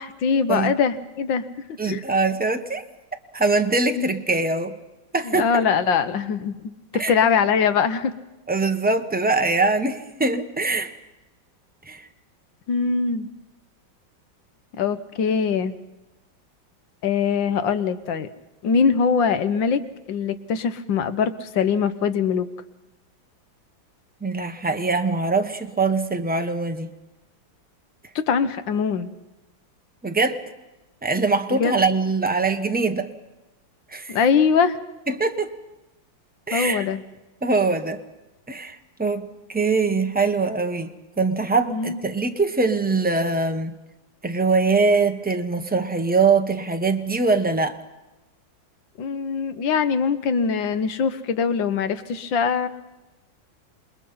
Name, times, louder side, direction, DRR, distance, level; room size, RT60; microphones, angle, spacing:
voice 1, 0.0-1.5 1.9-2.0 4.0-4.2 5.3-8.1 12.7-13.3 14.7-15.7 17.0-18.3 18.6-19.8 20.1-22.5 28.2-29.1 31.5-31.7 34.1-34.8 36.5-37.0 41.7-42.0 49.0-52.7, left 6 dB, 75° left, 11 dB, 1.8 m, -22 dB
voice 2, 1.8-2.8 3.3-4.8 5.1-5.6 6.9-7.2 8.5-10.9 11.9-12.1 24.2-26.9 30.0-30.4 31.0-33.1 33.9-34.2 35.1-35.5 36.5-36.9 37.4-38.0 38.5-40.9 41.2-43.7 44.2-47.8, right 3 dB, 10° right, 6 dB, 0.5 m, -22 dB
27.5 x 20.5 x 5.6 m, 1.0 s
omnidirectional pair, 2.1 m